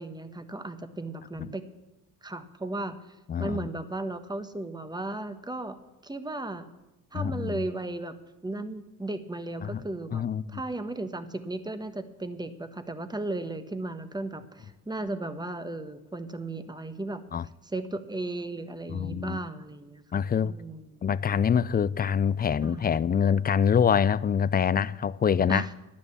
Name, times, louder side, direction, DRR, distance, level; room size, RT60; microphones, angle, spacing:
voice 1, 0.0-1.7 2.2-3.0 3.4-5.8 6.0-6.7 7.1-8.1 8.4-10.2 10.5-17.2 17.6-21.0 22.6-23.0 25.5-25.7, right 2 dB, 10° right, 1.2 m, -35 dB
voice 2, 3.3-3.7 7.1-7.6 9.6-9.8 10.1-10.4 17.3-17.4 18.9-19.4 20.1-20.5 21.0-25.7, left 7 dB, 25° left, 0.3 m, -25 dB
10.5 x 9.7 x 7.0 m
supercardioid pair, 65°, 44 cm